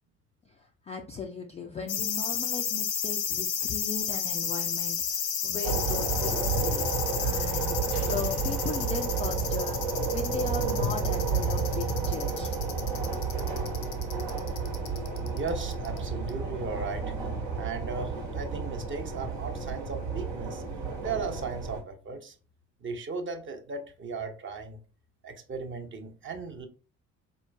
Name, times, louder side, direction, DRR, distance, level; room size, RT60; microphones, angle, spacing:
voice 1, 0.5-6.9 7.2-7.8 8.1-12.6, left 4 dB, 15° left, 0.3 m, -37 dB
sound 1, 1.9-16.0 16.3-16.4, left 8 dB, 70° left, 0.7 m, -32 dB
sound 2, 5.6-21.8, right 4 dB, 70° right, 1.2 m, -31 dB
sound 3, 7.9-10.5 10.9-11.0, right 2 dB, 85° right, 0.8 m, -41 dB
voice 2, 15.3-17.1 17.6-20.6 21.0-22.3 22.8-24.8 25.2-26.7, right 4 dB, 25° right, 0.7 m, -36 dB
4.2 x 3.0 x 2.3 m
figure-of-eight pair, 50°, 44 cm